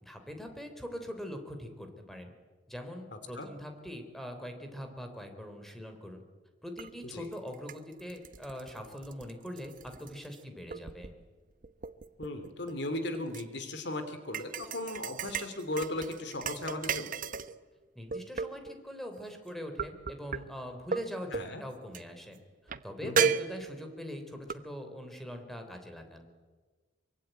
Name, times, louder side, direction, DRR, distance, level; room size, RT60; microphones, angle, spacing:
voice 1, 0.0-2.3 2.7-6.2 6.6-11.1 18.0-21.3 21.6-22.4 22.8-26.3, equal, ahead, 5 dB, 3.6 m, -42 dB
voice 2, 3.1-3.5 7.0-7.3 12.2-17.2 21.3-21.6 23.0-23.3, left 1 dB, 70° left, 9 dB, 2.7 m, -37 dB
sound 1, 6.8-6.9 7.3-10.4 10.7-11.2 11.6-13.4 14.3-17.6 18.1-18.8 19.8-20.4 20.9-21.0 21.3-21.5 21.9-22.0 22.7-22.8 23.2-24.0 24.5-24.6, right 6 dB, 50° right, 0.9 m, -34 dB
24.0 x 23.5 x 9.2 m, 1.4 s
head